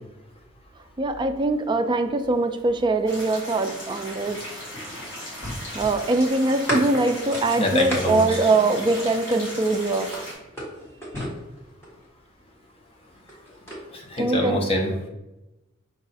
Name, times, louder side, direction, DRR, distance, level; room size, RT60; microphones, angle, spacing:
voice 1, 1.0-4.4 5.7-10.3 14.2-14.6, right 2 dB, 25° right, 7 dB, 0.3 m, -22 dB
sound 1, 3.1-10.3, left 1 dB, 80° left, 1.6 m, -37 dB
sound 2, 4.3-9.5 10.0-12.1 13.0-13.8, equal, 15° left, 1.4 m, -34 dB
voice 2, 7.6-8.4 13.9-15.1, left 1 dB, 30° left, 0 dB, 0.8 m, -25 dB
5.4 x 2.4 x 4.1 m, 0.98 s
head